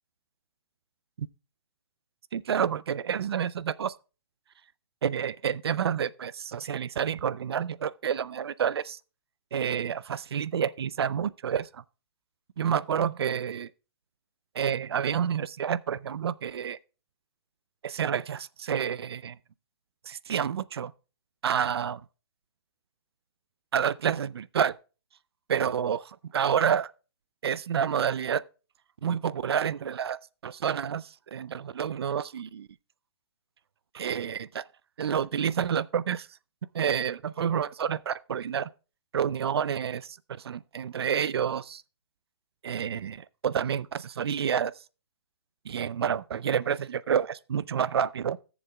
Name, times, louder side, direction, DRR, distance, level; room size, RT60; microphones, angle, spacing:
voice 1, 2.3-3.9 5.0-9.0 9.5-11.8 12.6-13.7 14.5-16.8 17.8-19.4 20.1-20.9 21.4-22.0 23.7-24.8 25.5-26.9 27.4-28.4 29.0-32.7 33.9-34.6 35.0-36.3 36.7-38.7 39.1-41.8 42.6-44.7 45.7-48.4, right 8 dB, 80° right, 0.5 m, -29 dB
16.5 x 7.1 x 2.2 m
hypercardioid pair, 165°, 13 cm